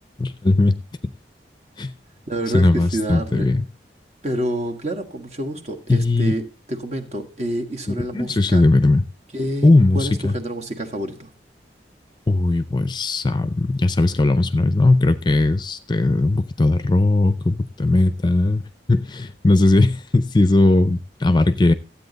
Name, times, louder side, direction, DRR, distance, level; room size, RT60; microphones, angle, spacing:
voice 1, 0.2-0.7 1.0-1.1 1.8-1.9 2.5-3.6 5.9-6.4 7.9-9.0 9.6-10.3 12.3-18.6 18.9-21.7, left 2 dB, 25° left, 13 dB, 0.5 m, -18 dB
voice 2, 2.3-3.5 4.2-8.6 9.3-11.3, right 1 dB, 40° right, 5 dB, 1.5 m, -28 dB
13.0 x 8.5 x 4.0 m, 0.33 s
head